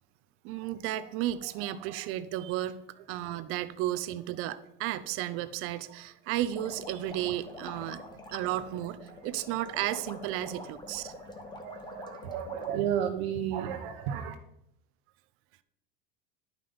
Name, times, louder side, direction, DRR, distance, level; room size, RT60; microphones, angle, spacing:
voice 1, 0.4-2.8 3.1-8.0 8.3-11.1, right 13 dB, 45° right, 13 dB, 0.7 m, -33 dB
voice 2, 1.6-2.1 5.9-6.0 9.1-9.2 10.5-10.7 11.1-14.3, right 9 dB, 70° right, 3 dB, 1.2 m, -34 dB
sound 1, 6.5-12.7, left 2 dB, 15° left, 1.1 m, -45 dB
11.5 x 5.7 x 5.2 m, 0.76 s
supercardioid pair, 150°, 31 cm